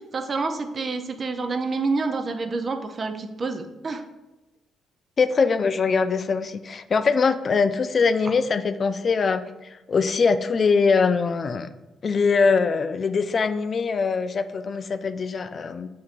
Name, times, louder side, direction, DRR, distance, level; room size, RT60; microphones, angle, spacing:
voice 1, 0.0-4.0, right 3 dB, 45° right, 6 dB, 0.5 m, -28 dB
voice 2, 5.2-11.7 12.0-15.9, left 5 dB, 50° left, 11 dB, 0.3 m, -22 dB
7.1 x 2.8 x 2.5 m, 1.0 s
supercardioid pair, 55°, 0 cm